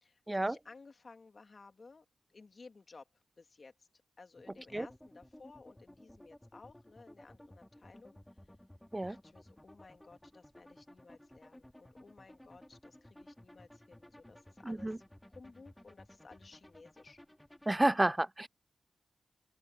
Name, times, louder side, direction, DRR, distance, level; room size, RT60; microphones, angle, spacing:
voice 1, 0.0-2.0 2.3-3.9 4.2-8.2 9.0-15.0 15.3-17.2, left 4 dB, 50° left, 2.5 m, -57 dB
sound 1, 4.4-17.9, left 1 dB, 10° left, 5.3 m, -57 dB
voice 2, 14.6-15.0 17.7-18.5, right 1 dB, 20° right, 0.3 m, -30 dB
open air
cardioid pair, 60°, 0 cm